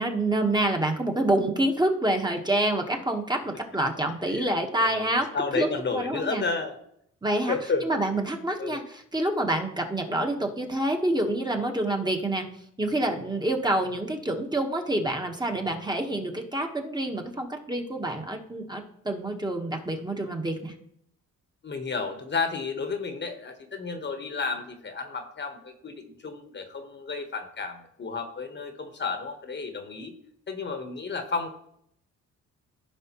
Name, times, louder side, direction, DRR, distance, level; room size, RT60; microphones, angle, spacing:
voice 1, 0.0-5.3 5.5-5.7 5.9-6.4 7.2-7.6 7.8-12.5 12.8-20.7, right 1 dB, 15° right, 3 dB, 1.2 m, -27 dB
voice 2, 4.2-6.8 7.5-7.9 8.6-8.8 21.6-30.1 30.5-31.5, left 4 dB, 35° left, 7 dB, 1.2 m, -32 dB
15.0 x 5.0 x 3.0 m, 0.72 s
cardioid pair, 90°, 30 cm